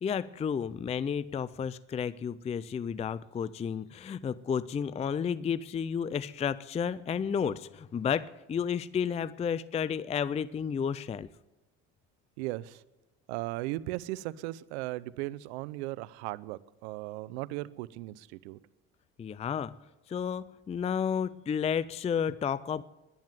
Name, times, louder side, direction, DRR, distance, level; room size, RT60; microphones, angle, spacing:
voice 1, 0.0-11.3 19.2-19.8 20.1-22.8, left 7 dB, 20° left, 18 dB, 0.4 m, -32 dB
voice 2, 12.4-12.8 13.3-18.6, right 18 dB, 85° right, 19 dB, 0.6 m, -37 dB
11.0 x 10.5 x 9.1 m, 1.0 s
supercardioid pair, 80°, 32 cm